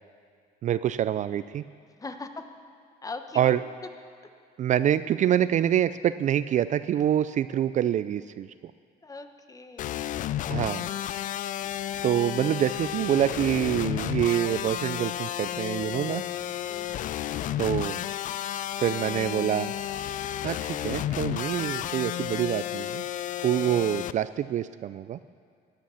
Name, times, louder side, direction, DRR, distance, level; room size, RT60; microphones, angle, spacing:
voice 1, 0.6-1.6 3.4-3.6 4.6-8.5 10.5-10.9 12.0-16.2 17.6-18.0 18.8-19.7 20.4-23.0 23.4-25.2, right 11 dB, 45° right, 14 dB, 0.4 m, -26 dB
voice 2, 3.0-3.5 9.0-10.1 16.7-17.2, left 3 dB, 20° left, 7 dB, 1.0 m, -41 dB
sound 1, 9.8-24.1, left 11 dB, 50° left, 0.4 m, -32 dB
14.5 x 9.1 x 7.0 m, 2.3 s
cardioid pair, 110°, 17 cm